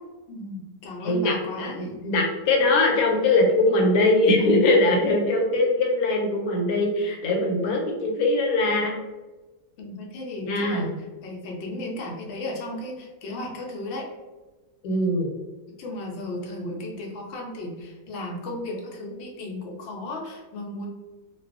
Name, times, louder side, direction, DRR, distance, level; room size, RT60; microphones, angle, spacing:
voice 1, 0.3-1.9 9.8-10.9 11.2-14.1 15.8-20.9, left 1 dB, 65° left, 0 dB, 0.6 m, -35 dB
voice 2, 1.0-9.0 10.4-10.9 14.8-15.3, left 2 dB, 80° left, 1 dB, 1.1 m, -22 dB
2.3 x 2.2 x 2.4 m, 1.2 s
omnidirectional pair, 1.5 m